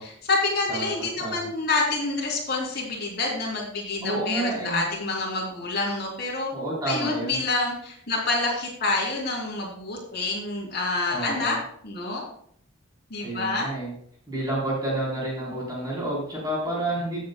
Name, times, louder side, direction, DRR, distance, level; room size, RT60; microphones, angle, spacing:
voice 1, 0.0-6.5 6.9-11.6 11.8-12.2 13.1-13.7, left 3 dB, 50° left, -2 dB, 3.1 m, -27 dB
voice 2, 4.0-4.8 6.5-7.4 11.1-11.6 13.2-13.9 14.3-17.2, right 1 dB, 20° right, -6 dB, 3.6 m, -29 dB
16.0 x 7.8 x 2.2 m, 0.64 s
head